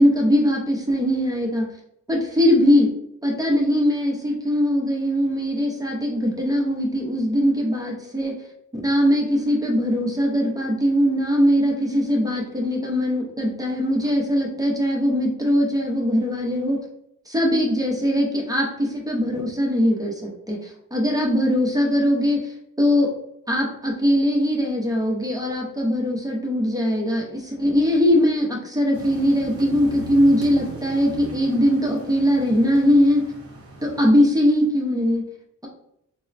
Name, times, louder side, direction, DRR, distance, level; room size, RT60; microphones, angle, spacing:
voice 1, 0.0-1.7 2.1-2.9 3.2-8.3 8.7-16.8 17.3-20.2 20.5-23.1 23.5-33.3 33.8-35.3, equal, 10° right, -1 dB, 0.4 m, -21 dB
sound 1, 28.9-34.1, right 1 dB, 40° right, 0.7 m, -38 dB
4.0 x 2.0 x 2.4 m, 0.77 s
wide cardioid pair, 170°, 36 cm